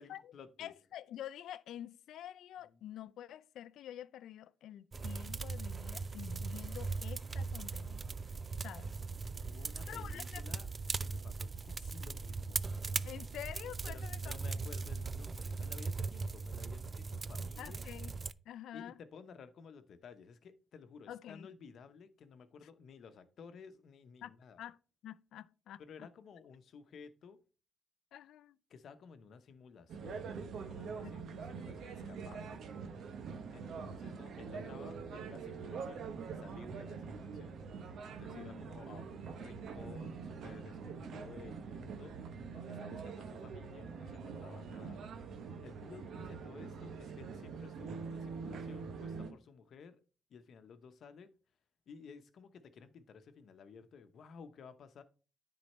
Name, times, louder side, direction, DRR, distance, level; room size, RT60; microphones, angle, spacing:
voice 1, 0.0-0.7 2.6-2.8 9.4-10.7 11.0-12.7 13.9-17.8 18.7-24.6 25.8-27.4 28.7-30.3 30.7-32.6 33.5-37.6 38.0-42.2 42.5-45.0 45.4-50.0 50.3-51.3 51.9-55.0, left 6 dB, 70° left, 0.8 m, -55 dB
voice 2, 0.6-8.1 8.6-8.9 9.9-10.4 13.1-14.3 17.6-18.1 18.5-19.0 21.1-21.5 24.2-24.8 25.0-26.1 28.1-28.6 31.0-31.2 38.3-38.6, left 11 dB, 85° left, 0.4 m, -48 dB
sound 1, 4.9-18.3, right 4 dB, 35° right, 0.3 m, -39 dB
sound 2, 29.9-49.3, right 5 dB, 75° right, 0.9 m, -44 dB
9.8 x 4.1 x 4.2 m
cardioid pair, 85°, 0 cm